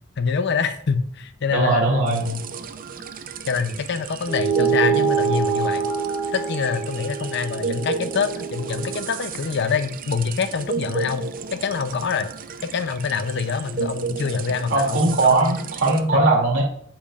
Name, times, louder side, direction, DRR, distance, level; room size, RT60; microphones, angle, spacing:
voice 1, 0.2-2.4 3.5-5.8 6.3-12.3 12.6-15.6 16.1-16.2, left 5 dB, 55° left, 11 dB, 0.5 m, -25 dB
voice 2, 1.5-2.3 14.7-16.6, right 2 dB, 65° right, 0 dB, 2.5 m, -19 dB
sound 1, 2.1-16.0, right 5 dB, 45° right, 0.5 m, -33 dB
sound 2, 4.3-9.1, right 6 dB, 20° right, 0.8 m, -25 dB
8.8 x 7.4 x 2.4 m, 0.63 s
head